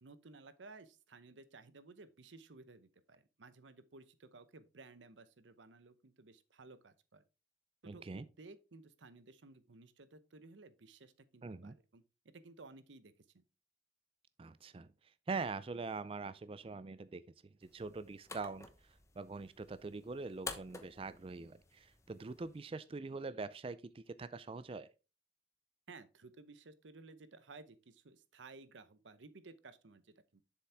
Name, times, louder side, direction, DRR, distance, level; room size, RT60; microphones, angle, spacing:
voice 1, 0.0-7.2 7.8-13.4 25.9-30.4, right 3 dB, 90° right, 0.8 m, -57 dB
voice 2, 7.9-8.2 11.4-11.8 14.4-24.9, right 4 dB, 30° right, 0.4 m, -44 dB
sound 1, 17.6-22.6, left 4 dB, 15° left, 0.8 m, -51 dB
7.1 x 7.0 x 3.4 m
head